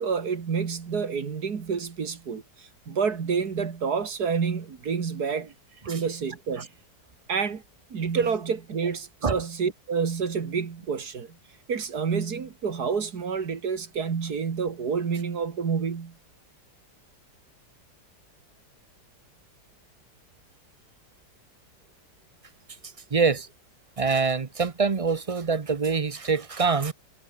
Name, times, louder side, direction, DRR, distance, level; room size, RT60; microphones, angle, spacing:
voice 1, 0.0-5.5 5.9-6.7 7.3-7.6 7.9-11.4 11.7-16.2, right 6 dB, 65° right, 2.4 m, -28 dB
voice 2, 23.1-23.5 24.0-26.9, right 5 dB, 35° right, 0.5 m, -25 dB
omnidirectional pair, 1.8 m